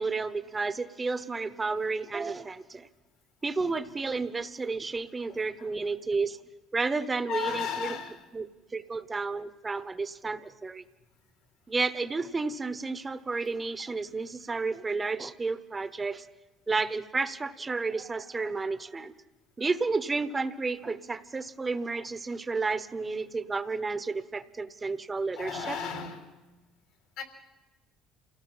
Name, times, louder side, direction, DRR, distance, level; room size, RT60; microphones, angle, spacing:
voice 1, 0.0-2.9 3.4-6.4 6.7-7.9 8.3-8.5 8.7-10.8 11.7-16.3 16.7-19.1 19.6-25.8, right 4 dB, 25° right, 14 dB, 1.0 m, -31 dB
voice 2, 3.6-3.9 5.3-5.7 7.2-8.2 25.4-26.3 27.2-27.3, left 7 dB, 75° left, 4 dB, 3.5 m, -35 dB
28.0 x 18.0 x 5.7 m, 1.2 s
supercardioid pair, 85°, 0 cm